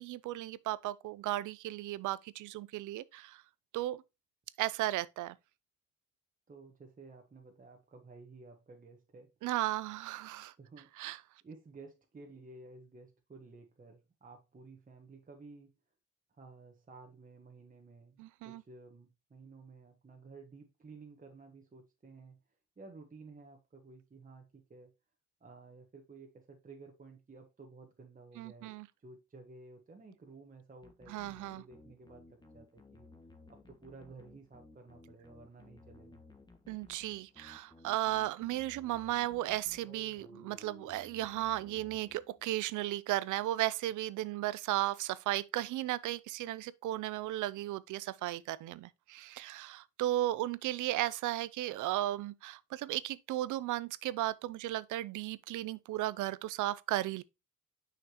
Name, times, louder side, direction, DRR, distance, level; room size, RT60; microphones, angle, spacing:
voice 1, 0.0-3.4 3.7-4.0 4.6-5.3 9.4-10.5 11.0-11.2 18.2-18.6 28.4-28.9 31.1-31.6 36.7-57.2, right 15 dB, 80° right, 0.5 m, -35 dB
voice 2, 6.5-9.3 10.6-10.9 11.4-15.7 16.4-22.4 22.8-24.9 25.4-33.0 33.5-36.2, right 3 dB, 25° right, 1.3 m, -54 dB
sound 1, 30.8-42.7, left 2 dB, 15° left, 1.3 m, -57 dB
6.4 x 5.8 x 2.9 m
cardioid pair, 90°, 30 cm